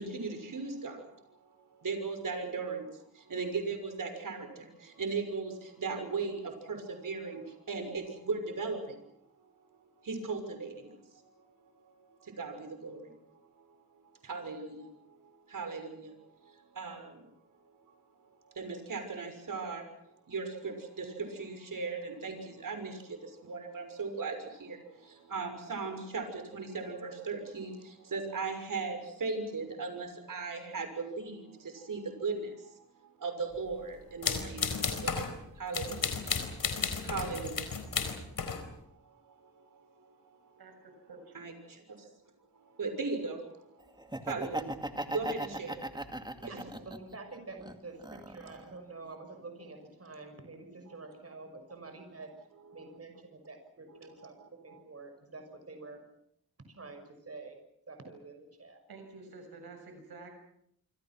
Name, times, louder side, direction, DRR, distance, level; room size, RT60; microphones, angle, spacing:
voice 1, 0.0-9.1 10.0-11.3 11.8-13.1 13.6-13.7 14.2-16.2 16.4-17.3 18.5-38.2 39.0-40.6 41.3-42.1 42.5-46.3 50.9-51.0 52.7-52.8 54.2-54.8, right 4 dB, 60° right, 6 dB, 6.3 m, -38 dB
sound 1, 34.2-35.4 35.7-38.7, left 5 dB, 65° left, 4.5 m, -33 dB
Laughter, 44.0-47.2 47.6-48.7, right 1 dB, 10° right, 2.2 m, -38 dB
voice 2, 46.4-52.3 52.7-56.0 56.7-57.6 57.9-58.8, right 3 dB, 40° right, 6 dB, 6.2 m, -48 dB
voice 3, 58.9-60.3, right 3 dB, 90° right, 6 dB, 6.8 m, -49 dB
27.0 x 26.5 x 6.2 m, 0.73 s
wide cardioid pair, 90°, 36 cm